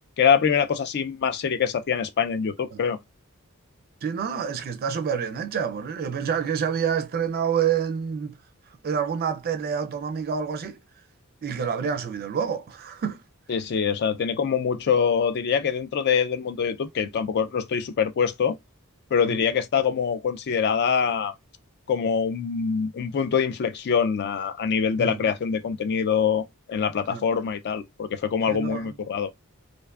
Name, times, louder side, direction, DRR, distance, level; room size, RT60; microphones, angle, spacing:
voice 1, 0.2-3.0 13.5-18.6 19.1-21.3 21.9-29.3, left 6 dB, 50° left, 0.4 m, -24 dB
voice 2, 4.0-8.4 8.8-10.8 11.4-13.2 19.2-19.4 25.0-25.2 27.1-27.2 28.5-28.9, right 7 dB, 45° right, 0.3 m, -28 dB
2.4 x 2.2 x 2.3 m
head